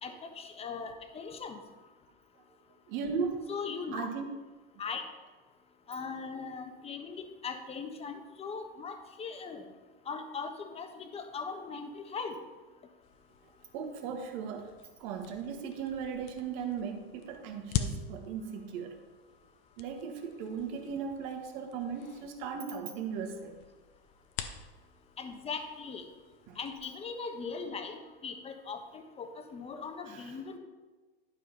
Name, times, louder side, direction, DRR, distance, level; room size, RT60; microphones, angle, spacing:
voice 1, 0.0-1.6 3.5-4.1 4.8-5.0 5.9-9.6 10.1-12.3 25.2-26.0 26.6-28.0 28.2-30.6, left 5 dB, 20° left, 6 dB, 1.2 m, -39 dB
voice 2, 2.9-4.4 13.7-19.0 19.8-23.6 26.5-26.6 30.1-30.4, right 6 dB, 55° right, 4 dB, 1.7 m, -37 dB
sound 1, 13.0-26.9, left 8 dB, 40° left, 0.9 m, -44 dB
12.0 x 4.9 x 5.6 m, 1.3 s
hypercardioid pair, 115°, 30 cm